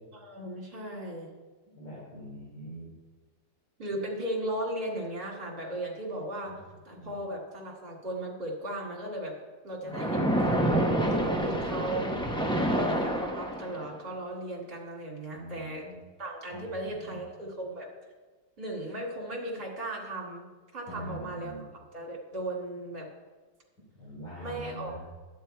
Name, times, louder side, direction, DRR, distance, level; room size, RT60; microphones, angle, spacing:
voice 1, 0.1-1.3 3.8-6.5 6.8-9.4 9.6-12.2 12.6-15.9 16.2-17.9 18.6-20.5 20.7-21.7 21.9-23.1 24.4-24.9, right 1 dB, 30° right, -2 dB, 2.5 m, -36 dB
voice 2, 1.8-2.9 6.5-6.6 7.0-7.1 9.8-10.1 15.3-15.9 16.5-16.6 17.0-17.1 20.9-21.6 24.0-25.0, right 1 dB, 70° left, -7 dB, 4.0 m, -43 dB
Splash splatter, 9.9-13.9, right 1 dB, 5° left, 0.5 m, -27 dB
11.5 x 9.3 x 4.5 m, 1.3 s
omnidirectional pair, 2.0 m